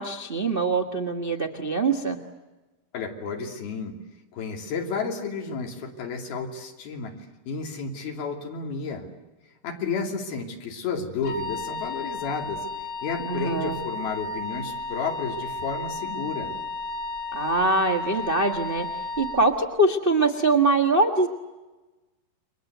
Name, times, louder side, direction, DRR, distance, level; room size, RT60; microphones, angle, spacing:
voice 1, 0.0-2.2 13.2-13.8 17.3-18.9 19.2-21.3, right 2 dB, 65° right, 3 dB, 0.5 m, -23 dB
voice 2, 2.9-3.9 4.3-7.1 7.5-9.1 9.6-12.6 13.0-16.5, left 5 dB, 85° left, 2 dB, 4.9 m, -32 dB
Wind instrument woodwind instrument, 11.2-19.4, left 3 dB, 45° left, 2.3 m, -33 dB
29.5 x 23.5 x 8.1 m, 1.1 s
omnidirectional pair, 4.2 m